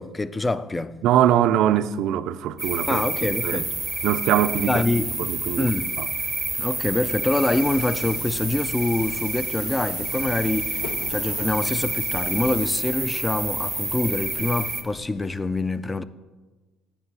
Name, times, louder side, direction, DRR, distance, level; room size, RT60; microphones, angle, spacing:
voice 1, 0.0-0.9 2.9-3.7 4.7-5.1 5.6-5.9 6.6-10.8 11.1-16.0, left 2 dB, 15° left, 0.3 m, -25 dB
voice 2, 1.0-3.0 3.4-3.7 4.0-4.8 5.2-5.7 6.0-6.1, right 11 dB, 70° right, 0.3 m, -22 dB
sound 1, 2.6-14.8, right 3 dB, 15° right, 0.7 m, -29 dB
Subway metro underground, 6.6-15.4, left 7 dB, 80° left, 0.4 m, -42 dB
9.4 x 3.2 x 5.4 m
supercardioid pair, 80°, 0 cm